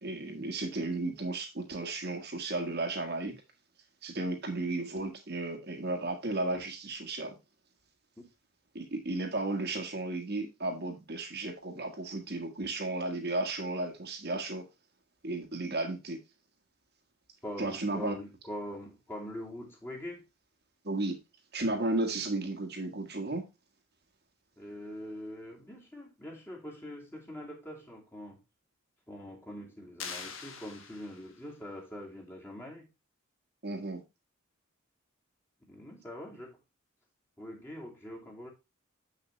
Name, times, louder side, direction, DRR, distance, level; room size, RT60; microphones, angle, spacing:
voice 1, 0.0-3.4 4.0-7.4 8.7-14.6 15.2-16.2 17.6-18.2 20.8-21.2 21.5-23.4 33.6-34.0, right 2 dB, 50° right, 1.6 m, -34 dB
voice 2, 17.4-20.2 24.6-28.4 29.1-32.9 35.6-36.6 37.4-38.5, equal, 10° left, 2.5 m, -43 dB
sound 1, 30.0-31.5, left 6 dB, 70° left, 1.5 m, -43 dB
7.4 x 6.5 x 3.2 m
head